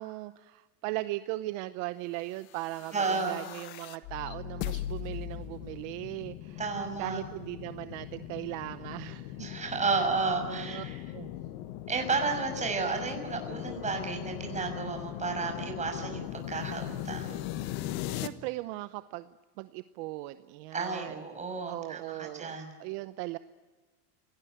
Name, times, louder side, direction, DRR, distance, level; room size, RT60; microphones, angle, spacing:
voice 1, 0.0-6.6 7.0-9.5 9.9-10.0 10.5-10.8 11.1-11.3 18.1-21.2 21.7-23.4, right 18 dB, 55° right, 12 dB, 0.9 m, -38 dB
sound 1, 2.5-18.3, left 13 dB, 60° left, 1.5 m, -39 dB
voice 2, 2.9-3.4 6.6-7.2 9.4-11.0 11.9-17.4 20.7-22.7, right 4 dB, 15° right, 4 dB, 6.1 m, -32 dB
27.0 x 18.5 x 9.2 m, 1.3 s
supercardioid pair, 140°, 45 cm